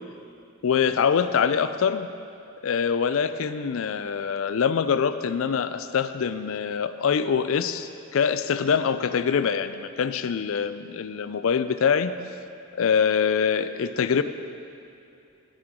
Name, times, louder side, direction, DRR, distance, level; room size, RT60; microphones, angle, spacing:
voice 1, 0.6-2.1 2.6-12.1 12.7-14.2, left 6 dB, 70° left, 12 dB, 0.4 m, -24 dB
17.5 x 6.4 x 3.7 m, 2.7 s
head